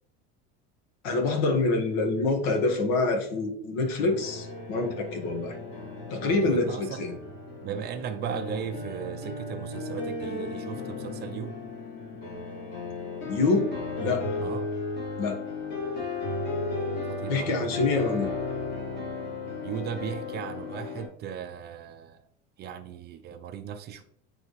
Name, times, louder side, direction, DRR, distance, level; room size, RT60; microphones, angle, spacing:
voice 1, 1.0-5.6 6.1-7.2 13.3-13.7 14.0-14.2 15.2-15.4 17.3-18.3, left 3 dB, 65° left, 4 dB, 1.5 m, -26 dB
sound 1, 4.0-21.1, left 3 dB, 35° left, 2.3 m, -35 dB
voice 2, 6.4-7.0 7.6-11.6 14.4-14.7 17.1-17.6 19.6-22.2 22.6-24.0, right 8 dB, 35° right, 8 dB, 0.5 m, -36 dB
9.0 x 3.5 x 3.2 m, 0.69 s
supercardioid pair, 145°, 31 cm